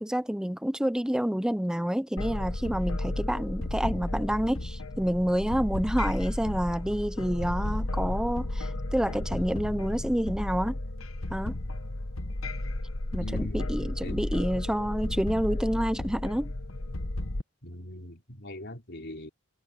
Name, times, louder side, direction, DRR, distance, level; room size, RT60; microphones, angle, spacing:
voice 1, 0.0-10.8 11.3-11.6 13.1-16.5, equal, 5° right, 0.6 m, -28 dB
sound 1, 2.2-17.4, left 1 dB, 75° left, 1.4 m, -33 dB
voice 2, 13.2-13.8 14.0-14.2 17.6-19.3, left 1 dB, 55° left, 4.8 m, -41 dB
head